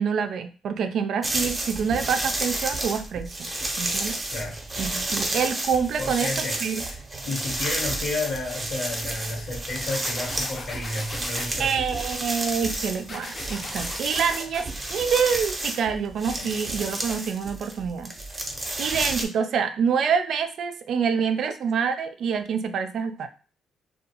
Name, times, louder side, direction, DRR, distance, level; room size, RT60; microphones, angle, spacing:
voice 1, 0.0-3.4 3.8-4.2 4.8-6.8 11.6-18.1 18.8-23.3, right 6 dB, 70° right, 0.3 m, -26 dB
sound 1, 1.2-19.2, right 2 dB, 25° right, 0.7 m, -31 dB
voice 2, 4.3-4.6 6.0-11.9 16.4-16.5, left 2 dB, 70° left, 1.1 m, -32 dB
sound 2, 9.9-11.5 13.1-14.7, left 3 dB, 40° left, 0.7 m, -38 dB
2.5 x 2.2 x 2.8 m
cardioid pair, 90°, 0 cm